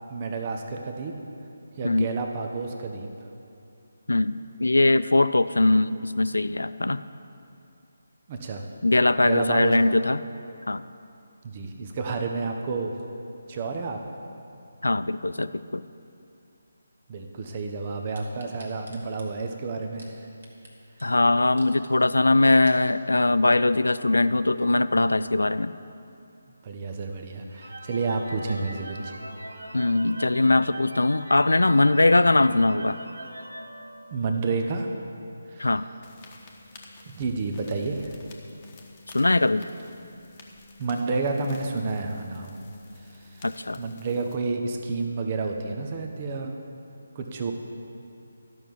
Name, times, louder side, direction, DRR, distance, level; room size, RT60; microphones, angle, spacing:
voice 1, 0.1-1.1 1.8-3.1 8.3-8.6 9.2-9.7 11.4-13.0 13.5-14.0 17.1-20.1 26.6-29.1 34.1-34.9 35.5-35.8 37.1-38.1 40.8-42.5 43.1-43.4 43.8-46.6 47.1-47.5, right 4 dB, 30° right, 4 dB, 1.0 m, -30 dB
voice 2, 4.1-7.0 8.8-10.2 10.7-10.8 14.8-15.8 21.0-25.7 29.7-33.0 35.6-35.9 39.1-39.6 43.4-43.8, left 2 dB, 75° left, 14 dB, 0.4 m, -21 dB
sound 1, 18.1-20.7 21.0-21.1 21.5-21.9 22.4-22.9 23.5-23.6, right 1 dB, 55° right, 1.9 m, -51 dB
sound 2, 27.5-34.5, right 1 dB, 85° right, 0.9 m, -41 dB
sound 3, 36.0-44.4, left 2 dB, 25° left, 1.2 m, -50 dB
12.5 x 6.1 x 6.9 m, 2.6 s
figure-of-eight pair, 150°, 0 cm